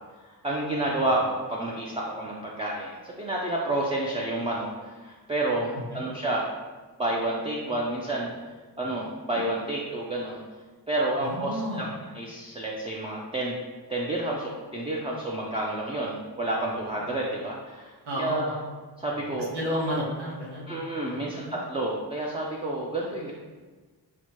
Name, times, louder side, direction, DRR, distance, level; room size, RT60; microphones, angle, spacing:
voice 1, 0.4-6.5 7.0-8.3 8.8-10.4 10.9-13.5 13.9-18.6 19.0-19.5 20.7-23.3, right 1 dB, 15° right, -4 dB, 0.4 m, -30 dB
voice 2, 11.2-11.9 18.0-18.7 19.5-21.5, equal, 90° right, -5 dB, 1.2 m, -32 dB
6.1 x 2.1 x 2.9 m, 1.4 s
wide cardioid pair, 100°, 39 cm